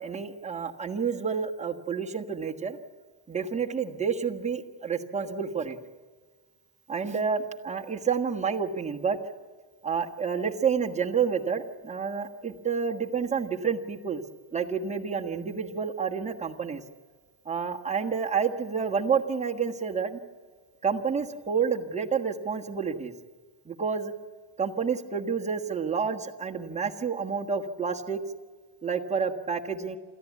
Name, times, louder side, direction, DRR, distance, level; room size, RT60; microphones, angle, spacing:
voice 1, 0.0-2.8 3.3-5.8 6.9-9.2 9.8-14.2 14.5-16.8 17.4-20.2 20.8-23.1 23.6-24.1 24.6-28.2 28.8-30.0, right 6 dB, 15° right, 0 dB, 1.4 m, -29 dB
28.0 x 14.0 x 8.4 m, 1.5 s
cardioid pair, 155°, 49 cm